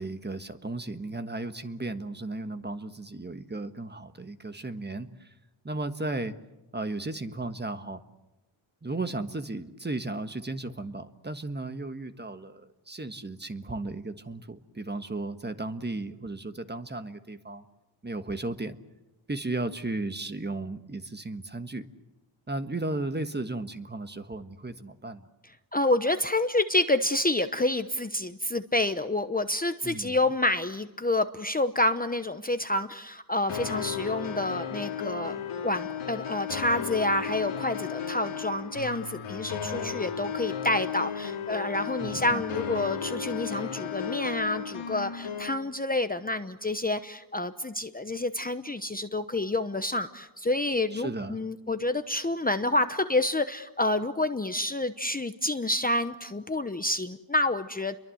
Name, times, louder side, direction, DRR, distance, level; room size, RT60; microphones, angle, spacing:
voice 1, 0.0-5.3 5.6-6.3 6.7-8.0 8.8-17.6 18.0-18.8 19.3-21.9 22.5-25.3 29.8-30.2 39.6-40.2 42.0-42.4 50.9-51.4, right 2 dB, 20° right, 9 dB, 1.5 m, -35 dB
voice 2, 25.7-35.4 35.6-58.0, left 2 dB, 20° left, 9 dB, 1.0 m, -28 dB
sound 1, 33.5-45.5, left 7 dB, 85° left, 2.4 m, -34 dB
29.5 x 23.0 x 7.9 m, 0.97 s
wide cardioid pair, 105°, 48 cm